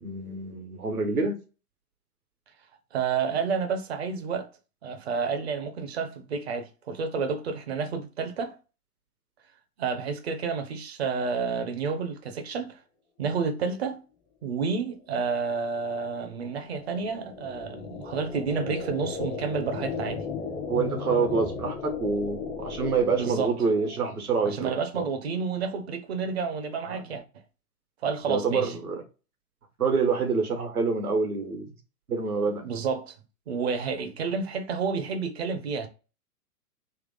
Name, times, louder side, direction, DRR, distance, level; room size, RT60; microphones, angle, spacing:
voice 1, 0.0-1.4 20.7-25.1 26.9-27.0 28.3-29.0 29.8-31.7 32.1-32.6, right 4 dB, 70° right, 1.5 m, -27 dB
voice 2, 2.9-4.5 4.8-8.6 9.8-12.8 13.2-14.0 14.4-20.2 23.1-23.5 24.4-27.2 28.0-28.7 32.6-33.2 33.5-35.9, right 5 dB, 45° right, 0.8 m, -30 dB
sound 1, 15.2-24.1, left 5 dB, ahead, 0.5 m, -36 dB
3.4 x 3.0 x 3.7 m
figure-of-eight pair, 110°, 46 cm